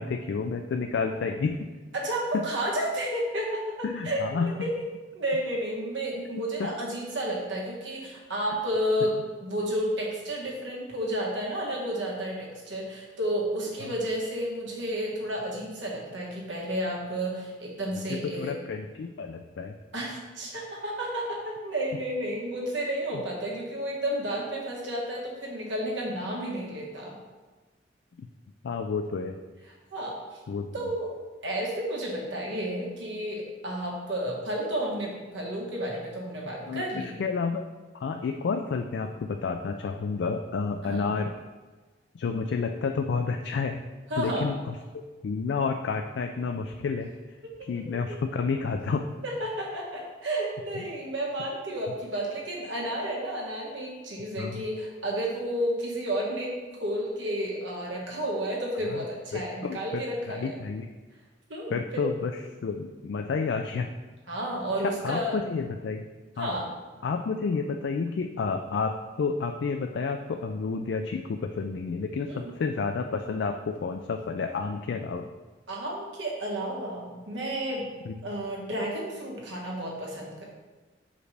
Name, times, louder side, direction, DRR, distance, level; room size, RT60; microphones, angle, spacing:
voice 1, 0.0-1.7 2.3-2.4 3.8-4.5 6.6-6.7 13.8-13.9 18.1-19.7 23.1-23.2 28.2-28.3 28.6-29.4 30.5-30.7 36.7-37.6 37.9-41.3 42.1-43.8 44.2-44.8 45.2-47.1 47.6-49.1 54.4-54.6 58.8-59.0 59.3-59.8 60.3-60.9 61.7-62.3 62.6-63.9 64.8-66.0 66.4-66.6 67.0-75.3 78.1-78.2, left 4 dB, 65° left, 5 dB, 0.3 m, -30 dB
voice 2, 1.9-4.7 5.1-9.1 9.4-18.5 19.9-27.2 29.9-30.4 30.7-31.1 31.4-37.1 40.8-41.1 44.1-44.5 47.4-47.5 47.9-48.2 49.2-56.5 56.8-60.5 61.5-62.0 64.3-65.3 66.4-66.7 72.3-72.5 75.7-77.9 78.2-80.4, right 1 dB, 75° right, -2 dB, 1.5 m, -31 dB
6.3 x 4.9 x 3.3 m, 1.3 s
head